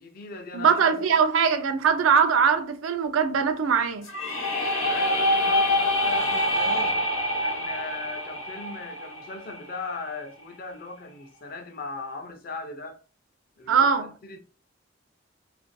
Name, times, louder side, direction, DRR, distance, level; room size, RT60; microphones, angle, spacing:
voice 1, 0.0-0.8 4.8-7.0 7.4-13.0 13.6-14.4, left 3 dB, 45° left, 0.5 m, -38 dB
voice 2, 0.5-4.1 13.7-14.1, right 6 dB, 85° right, 0.4 m, -21 dB
sound 1, 4.0-9.9, left 1 dB, 85° left, 0.8 m, -25 dB
2.4 x 2.2 x 2.5 m
head